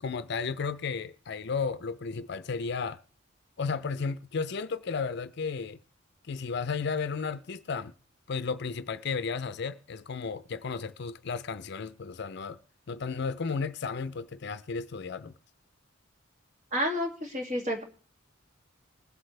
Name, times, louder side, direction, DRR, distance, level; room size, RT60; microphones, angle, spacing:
voice 1, 0.0-3.0 3.6-5.8 6.3-7.9 8.3-12.6 12.9-15.3, left 5 dB, 55° left, 0.5 m, -33 dB
voice 2, 16.7-17.8, equal, 35° right, 2.4 m, -30 dB
21.0 x 7.9 x 3.3 m
head